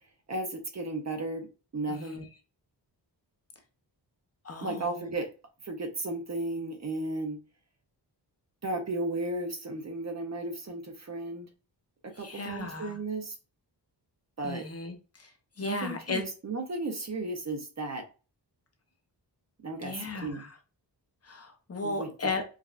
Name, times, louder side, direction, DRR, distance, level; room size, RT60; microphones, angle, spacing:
voice 1, 0.3-2.2 4.6-5.3 5.6-7.4 8.6-11.5 12.0-13.4 14.4-14.7 15.6-18.0 19.6-20.4 21.8-22.3, right 2 dB, 40° right, 0.6 m, -34 dB
voice 2, 1.9-2.3 4.4-5.1 12.1-13.0 14.4-16.2 19.8-20.6 21.2-22.4, left 3 dB, 35° left, 0.7 m, -36 dB
4.8 x 2.2 x 2.4 m
wide cardioid pair, 135°, 43 cm